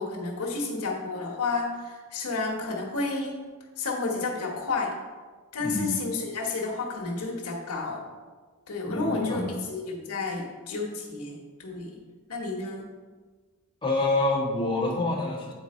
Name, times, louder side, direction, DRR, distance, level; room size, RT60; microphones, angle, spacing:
voice 1, 0.0-3.4 3.8-4.9 5.5-8.0 8.7-12.0 12.3-12.9, left 3 dB, 80° left, -1 dB, 1.2 m, -31 dB
voice 2, 8.9-9.5 13.8-15.5, left 2 dB, 20° left, -4 dB, 1.4 m, -27 dB
8.7 x 4.3 x 4.2 m, 1.4 s
head